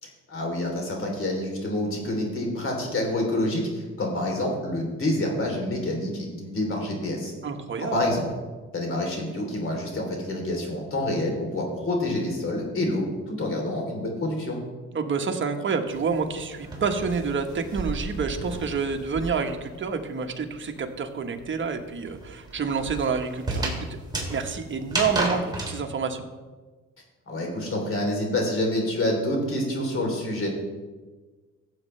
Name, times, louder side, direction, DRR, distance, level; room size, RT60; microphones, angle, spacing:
voice 1, 0.0-7.3 7.8-8.3 8.7-14.6 27.3-30.5, left 1 dB, 45° left, 0 dB, 3.4 m, -27 dB
voice 2, 7.4-8.0 14.9-23.9 24.3-26.3, right 5 dB, 40° right, 4 dB, 1.2 m, -28 dB
sound 1, 15.9-19.6 19.9-25.8, right 2 dB, 15° right, 3.1 m, -33 dB
15.5 x 7.5 x 3.3 m, 1.3 s
cardioid pair, 90°, 30 cm